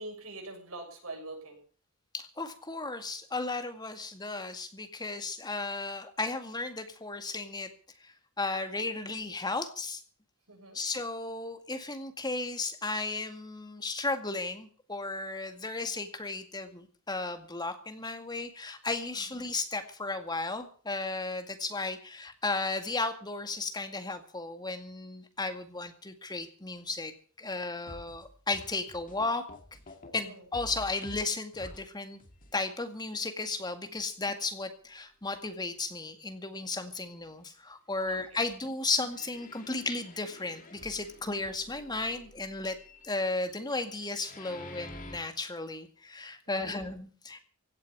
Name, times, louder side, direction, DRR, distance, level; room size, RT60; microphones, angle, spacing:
voice 1, 0.0-1.6 10.5-10.8 30.2-30.5 38.1-38.4 46.5-46.9, right 2 dB, 80° right, 2 dB, 7.0 m, -44 dB
voice 2, 2.1-7.7 8.0-10.0 10.7-27.1 27.4-29.5 30.1-32.2 32.5-42.8 43.0-47.4, left 3 dB, 20° left, 7 dB, 2.0 m, -34 dB
sound 1, 27.9-30.2 30.5-31.9 32.2-32.7 33.2-33.3 33.9-34.0 34.6-34.7 39.0-45.2, left 1 dB, 40° left, 2.3 m, -49 dB
16.5 x 8.4 x 8.6 m, 0.43 s
head